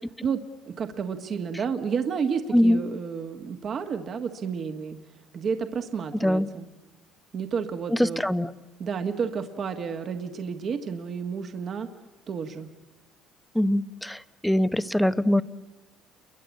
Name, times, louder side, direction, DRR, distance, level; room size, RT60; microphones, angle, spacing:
voice 1, 0.7-5.0 5.3-6.7 7.3-8.2 8.8-11.9 12.3-12.7, right 6 dB, 40° right, 7 dB, 1.6 m, -31 dB
voice 2, 8.0-8.5 13.5-15.4, left 1 dB, 5° left, 14 dB, 0.8 m, -22 dB
28.5 x 23.0 x 8.4 m, 1.2 s
cardioid pair, 115°, 0 cm